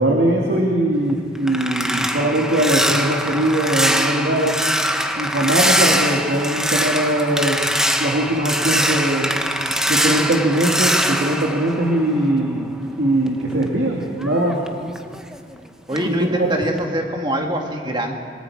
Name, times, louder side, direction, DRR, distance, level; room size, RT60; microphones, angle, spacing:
voice 1, 0.0-4.6 5.2-7.6 8.0-9.3 9.9-12.7 13.0-14.6 16.0-16.5, right 1 dB, 70° right, -1 dB, 2.3 m, -20 dB
sound 1, 0.9-12.6 12.9-15.6 15.9-16.2 16.6-16.9, equal, 5° right, 0.9 m, -23 dB
voice 2, 15.9-18.1, equal, 25° right, 2 dB, 2.1 m, -24 dB
27.0 x 20.0 x 4.9 m, 2.2 s
head